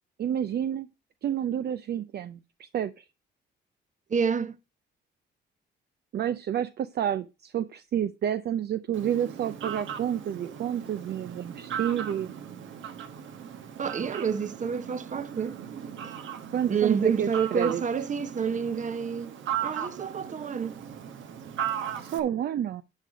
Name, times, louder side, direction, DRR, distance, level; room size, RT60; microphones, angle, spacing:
voice 1, 0.2-0.9 1.2-3.0 6.1-12.3 16.5-17.8 22.0-22.8, right 10 dB, 55° right, 0.5 m, -29 dB
voice 2, 4.1-4.6 13.8-15.6 16.7-19.4 19.6-20.8, right 6 dB, 40° right, 0.9 m, -28 dB
Fowl, 8.9-22.2, right 9 dB, 75° right, 1.3 m, -37 dB
10.5 x 5.0 x 4.9 m
cardioid pair, 90°, 20 cm